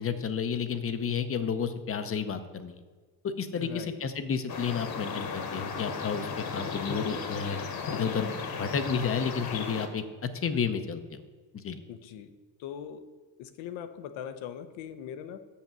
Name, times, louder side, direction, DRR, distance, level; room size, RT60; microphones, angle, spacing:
voice 1, 0.0-2.8 3.2-7.6 7.9-11.2 11.5-11.8, left 6 dB, 30° left, 10 dB, 0.6 m, -31 dB
voice 2, 3.5-4.0 11.9-13.1 13.4-15.5, left 9 dB, 70° left, 11 dB, 0.8 m, -41 dB
sound 1, 4.5-9.9, left 5 dB, 45° left, 1.3 m, -35 dB
6.6 x 5.6 x 7.3 m, 1.4 s
cardioid pair, 115°, 49 cm